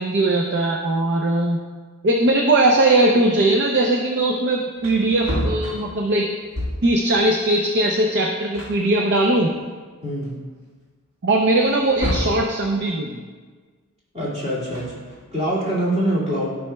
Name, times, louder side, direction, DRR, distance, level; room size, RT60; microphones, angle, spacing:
voice 1, 0.0-1.6 2.0-6.3 6.8-9.5 11.2-13.2, right 2 dB, 50° right, 1 dB, 0.5 m, -19 dB
Wood, 4.3-4.4 4.7-7.0 8.1-8.2 8.5-9.7 10.2-10.3 11.6-12.5 14.5-15.4, equal, 70° right, 1.6 m, -29 dB
voice 2, 14.1-14.9 15.3-16.5, right 1 dB, 30° right, -8 dB, 2.3 m, -23 dB
12.5 x 5.5 x 2.3 m, 1.5 s
head